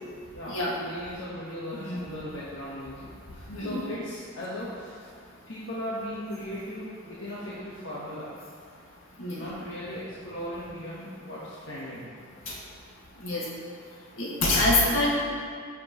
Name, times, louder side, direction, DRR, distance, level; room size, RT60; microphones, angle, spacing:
voice 1, 0.3-5.1 5.5-8.3 9.3-12.2, left 1 dB, 65° left, -8 dB, 1.2 m, -38 dB
voice 2, 1.7-2.0 3.5-3.8 9.2-9.4 12.5-12.6 13.2-13.4 14.2-15.1, left 1 dB, 80° left, -5 dB, 1.9 m, -25 dB
10.5 x 6.0 x 3.0 m, 2.2 s
head